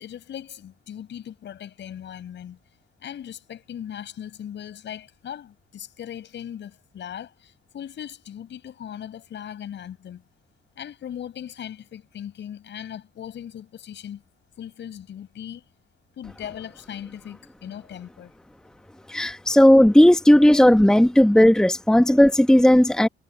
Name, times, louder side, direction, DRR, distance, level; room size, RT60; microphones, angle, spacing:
voice 1, 0.0-2.6 3.0-10.2 10.8-14.2 14.6-15.6 16.2-18.3, left 9 dB, 65° left, 6.1 m, -38 dB
voice 2, 19.1-23.1, left 1 dB, 5° left, 1.1 m, -15 dB
cardioid pair, 90°, 20 cm